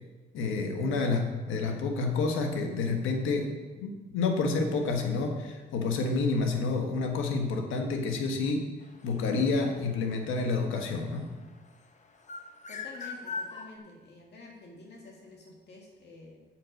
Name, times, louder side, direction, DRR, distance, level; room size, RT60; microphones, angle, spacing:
voice 1, 0.3-8.7 9.0-11.3, left 3 dB, 85° left, 3 dB, 1.2 m, -29 dB
sound 1, 8.8-11.7 12.1-13.7, left 4 dB, 35° left, 1.0 m, -40 dB
voice 2, 12.7-16.4, left 2 dB, 60° left, -1 dB, 1.8 m, -49 dB
7.7 x 7.5 x 5.2 m, 1.2 s
cardioid pair, 90°, 20 cm